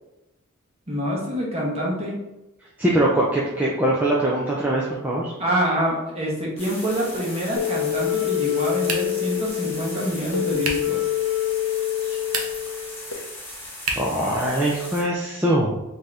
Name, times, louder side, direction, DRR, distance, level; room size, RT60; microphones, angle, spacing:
voice 1, 0.9-2.2 5.4-11.0, equal, 25° right, -3 dB, 0.9 m, -26 dB
voice 2, 2.8-5.3 14.0-15.7, right 1 dB, 5° right, -5 dB, 0.4 m, -22 dB
sound 1, 6.6-15.0, left 1 dB, 10° left, 0.8 m, -38 dB
sound 2, 7.6-13.1, left 12 dB, 60° left, 0.6 m, -26 dB
sound 3, 8.8-9.3 10.6-11.0 12.2-12.8 13.8-14.2, right 3 dB, 75° right, 0.7 m, -29 dB
3.6 x 2.7 x 3.3 m, 0.99 s
head